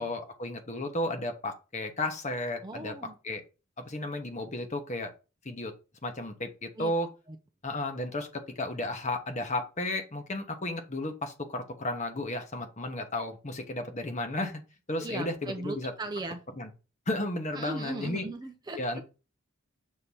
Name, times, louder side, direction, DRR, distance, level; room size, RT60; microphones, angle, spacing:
voice 1, 0.0-2.9 3.2-3.4 3.8-5.1 5.4-5.7 6.0-7.1 7.6-14.6 14.9-15.9 16.6-16.7 17.1-18.2 18.8-19.0, left 1 dB, 35° left, 5 dB, 1.1 m, -33 dB
voice 2, 2.6-3.2 6.8-6.9 7.3-7.4 15.0-16.4 17.5-19.0, right 2 dB, 20° right, 6 dB, 0.5 m, -38 dB
6.5 x 2.9 x 5.4 m, 0.31 s
head